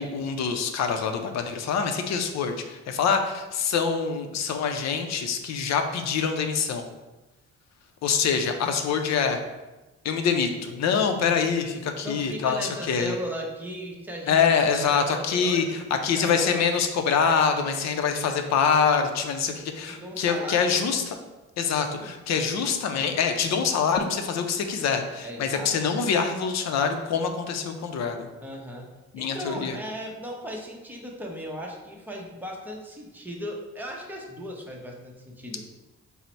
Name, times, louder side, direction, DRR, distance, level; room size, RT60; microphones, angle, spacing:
voice 1, 0.0-6.8 8.0-9.4 10.0-13.1 14.3-21.2 21.6-28.3 29.1-29.8, left 6 dB, 65° left, 6 dB, 0.5 m, -25 dB
voice 2, 12.0-16.6 19.8-20.9 22.0-22.1 25.2-25.7 28.4-28.9 29.2-35.6, equal, 5° right, -1 dB, 0.7 m, -37 dB
3.9 x 2.1 x 4.3 m, 1.1 s
cardioid pair, 90°, 30 cm